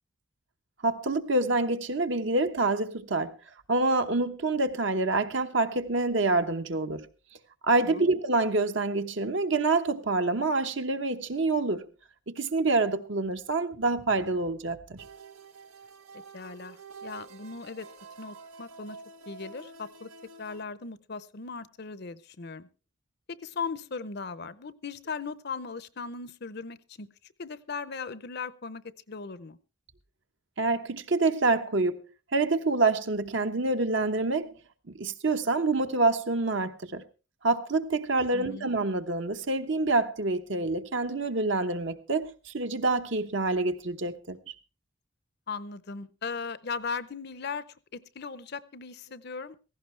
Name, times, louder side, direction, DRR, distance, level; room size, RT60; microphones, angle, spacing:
voice 1, 0.8-3.3 3.7-7.1 7.6-11.9 12.3-15.0 30.6-32.0 32.3-34.5 35.0-37.0 37.4-44.5, right 3 dB, 60° right, 1.0 m, -27 dB
voice 2, 7.8-8.1 16.3-17.9 18.2-19.0 19.3-20.1 20.4-22.7 23.3-27.1 27.4-28.8 29.1-29.6 38.3-38.7 45.5-49.6, left 5 dB, 50° left, 0.7 m, -38 dB
sound 1, 15.0-20.6, right 4 dB, 85° right, 1.2 m, -48 dB
16.5 x 15.5 x 3.3 m
head